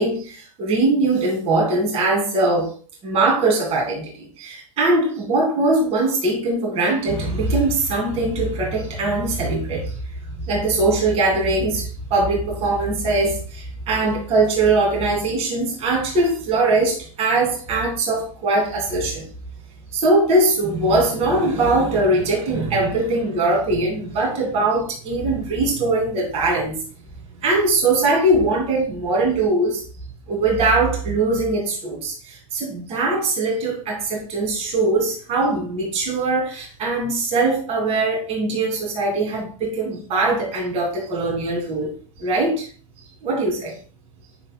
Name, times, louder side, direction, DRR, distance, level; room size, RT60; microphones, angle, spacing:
voice 1, 0.0-2.7 3.0-9.9 10.5-19.2 19.9-26.8 27.4-29.8 30.3-41.9 42.2-42.7 43.2-43.7, right 2 dB, 35° right, 2.6 m, -21 dB
11.5 x 4.0 x 2.3 m
supercardioid pair, 135°, 18 cm